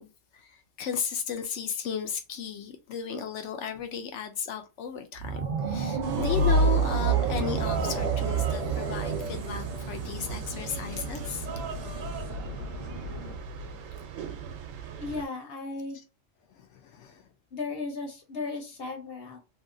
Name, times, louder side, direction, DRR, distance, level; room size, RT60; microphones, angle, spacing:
voice 1, 0.0-11.5 13.6-13.7 16.5-17.3, left 7 dB, 70° left, 0.9 m, -35 dB
sound 1, 5.2-10.4, right 5 dB, 50° right, 0.6 m, -32 dB
sound 2, 6.0-15.2, right 3 dB, 85° right, 1.0 m, -30 dB
sound 3, 7.0-13.4, right 2 dB, 15° left, 0.7 m, -42 dB
voice 2, 15.0-16.0 17.5-19.4, left 3 dB, 55° left, 1.1 m, -35 dB
2.7 x 2.6 x 2.5 m
omnidirectional pair, 1.3 m